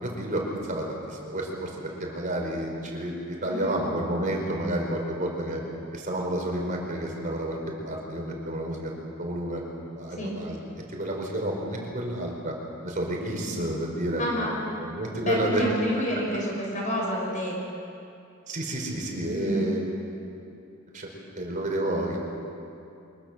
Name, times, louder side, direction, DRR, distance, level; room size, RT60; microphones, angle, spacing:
voice 1, 0.0-5.6 5.9-7.6 7.8-8.9 9.2-9.6 9.9-10.6 10.9-12.5 12.8-14.2 14.8-15.6 18.5-19.8 20.9-21.1 21.4-22.2, right 1 dB, 40° right, 0 dB, 4.8 m, -30 dB
voice 2, 3.4-3.8 10.2-10.3 14.2-14.6 15.2-17.6 19.4-19.8, equal, 35° left, -2 dB, 5.8 m, -28 dB
24.5 x 20.5 x 7.5 m, 2.6 s
head